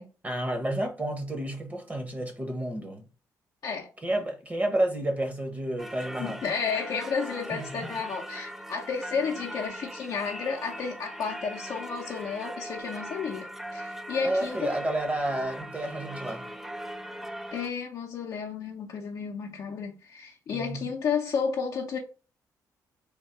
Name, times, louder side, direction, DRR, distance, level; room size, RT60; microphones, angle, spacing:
voice 1, 0.2-3.1 4.0-6.4 7.5-7.9 14.2-16.5 20.5-20.9, right 1 dB, 20° right, 1.0 m, -30 dB
Singing / Church bell, 5.8-17.7, equal, 5° right, 0.4 m, -40 dB
voice 2, 6.2-14.7 17.5-22.0, left 5 dB, 60° left, 0.6 m, -32 dB
3.5 x 2.2 x 4.4 m
cardioid pair, 100°, 7 cm